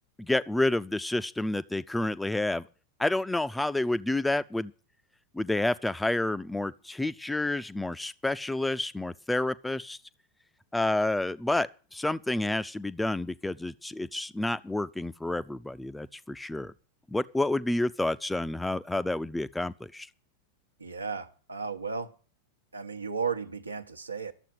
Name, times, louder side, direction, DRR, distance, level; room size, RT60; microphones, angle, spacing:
voice 1, 0.2-2.7 3.0-4.7 5.3-10.0 10.7-16.7 17.1-20.1, left 2 dB, 5° left, 0.5 m, -29 dB
voice 2, 20.8-22.1 22.7-24.3, right 5 dB, 80° right, 1.1 m, -34 dB
12.0 x 7.5 x 9.2 m
figure-of-eight pair, 90°, 0 cm